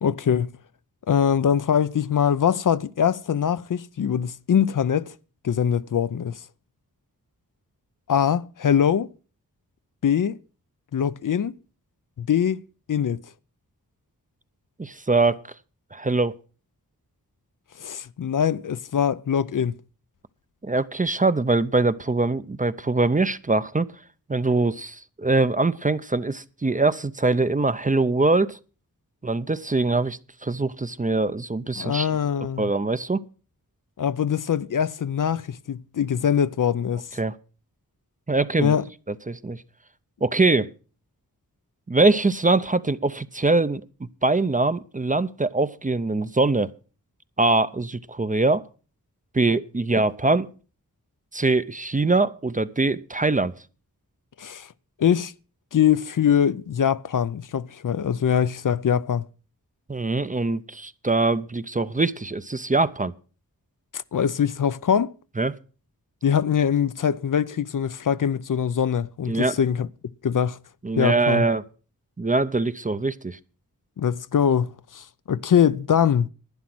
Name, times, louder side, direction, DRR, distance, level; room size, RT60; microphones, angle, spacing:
voice 1, 0.0-0.5 1.1-5.1 5.4-6.4 8.1-9.1 10.0-10.4 10.9-11.5 12.2-12.6 12.9-13.2 17.8-19.8 31.8-32.7 34.0-37.1 38.6-38.8 54.4-54.7 55.0-55.3 55.7-59.2 63.9-65.1 66.2-69.9 70.2-70.6 71.0-71.5 74.0-76.3, left 8 dB, 60° left, 0.5 m, -23 dB
voice 2, 14.8-15.5 15.9-16.4 20.6-23.9 24.3-28.6 29.2-32.1 32.6-33.3 37.2-37.4 38.3-38.8 39.1-39.6 40.2-40.7 41.9-43.8 44.2-46.7 47.4-48.6 49.3-50.5 51.3-53.5 59.9-63.1 65.4-65.6 69.3-69.5 70.8-71.6 72.2-73.4, right 3 dB, 20° right, 0.6 m, -23 dB
11.5 x 9.6 x 6.0 m
wide cardioid pair, 75°, 36 cm